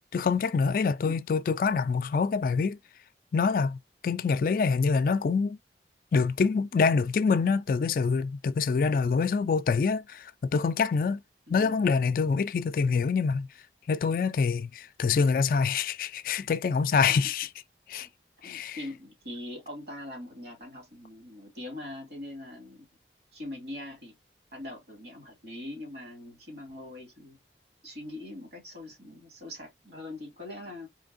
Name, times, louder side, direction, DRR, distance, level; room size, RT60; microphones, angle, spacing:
voice 1, 0.1-2.8 3.3-3.8 4.0-5.6 6.1-11.2 11.5-13.5 13.9-17.5 17.9-18.1 18.4-18.8, left 5 dB, 50° left, 0.3 m, -25 dB
voice 2, 11.5-11.8 17.1-17.2 18.0-18.1 18.4-22.9 23.3-24.2 24.5-27.4 27.8-30.9, left 1 dB, 65° right, 2.2 m, -42 dB
4.3 x 3.3 x 2.5 m
head